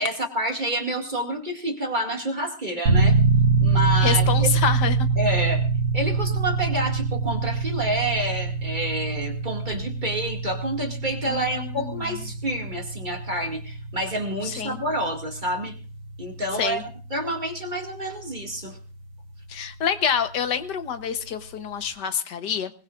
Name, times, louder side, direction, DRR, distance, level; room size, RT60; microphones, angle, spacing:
voice 1, 0.0-3.2 3.6-4.5 5.2-5.6 5.9-15.7 16.2-18.8, right 1 dB, 20° right, 1 dB, 2.3 m, -28 dB
sound 1, 2.9-19.6, right 4 dB, 85° right, 3.0 m, -25 dB
voice 2, 4.0-5.1 11.3-11.9 14.4-14.8 16.6-16.8 19.5-22.7, left 7 dB, 60° left, 10 dB, 1.5 m, -27 dB
22.5 x 20.5 x 2.5 m, 0.37 s
omnidirectional pair, 2.3 m